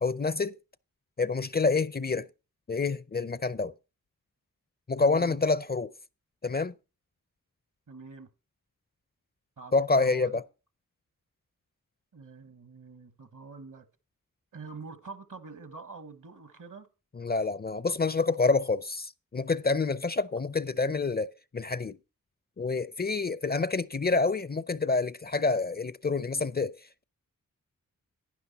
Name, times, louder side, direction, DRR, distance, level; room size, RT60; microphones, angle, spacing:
voice 1, 0.0-0.6 1.2-2.3 2.7-3.7 4.9-5.9 6.4-6.7 9.7-10.4 17.2-22.0 22.6-27.0, left 3 dB, 30° left, 0.5 m, -27 dB
voice 2, 5.0-5.4 7.9-8.3 9.6-10.4 12.1-13.9 14.5-16.9, right 4 dB, 65° right, 1.4 m, -46 dB
11.0 x 9.9 x 4.1 m
cardioid pair, 50°, 33 cm